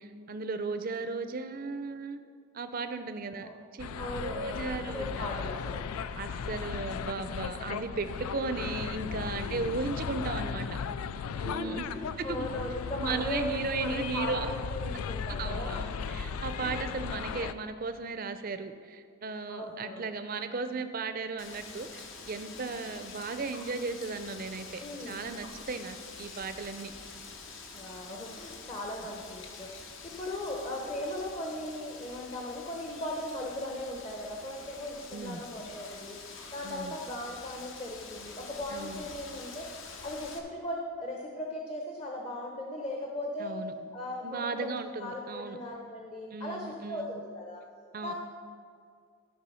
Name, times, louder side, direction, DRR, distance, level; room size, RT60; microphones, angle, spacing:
voice 1, 0.0-2.2 2.5-5.4 6.2-10.7 11.4-11.9 12.2-12.5 13.0-14.5 15.3-26.9 35.1-35.4 36.6-37.0 38.7-39.1 43.4-43.7 44.2-45.6 46.3-47.1 47.9-48.1, right 4 dB, 40° right, 9 dB, 0.5 m, -36 dB
sound 1, 3.8-17.5, left 6 dB, 85° left, 0.3 m, -36 dB
voice 2, 4.0-5.8 11.2-15.8 16.6-17.0 19.5-20.1 24.8-25.3 27.7-29.7 30.0-36.2 36.5-39.7 40.0-43.6 43.9-47.6 48.0-48.1, left 1 dB, 25° left, -1 dB, 0.8 m, -38 dB
Wind, 21.4-40.4, left 4 dB, 60° left, 1.0 m, -47 dB
13.0 x 4.7 x 5.6 m, 2.2 s
head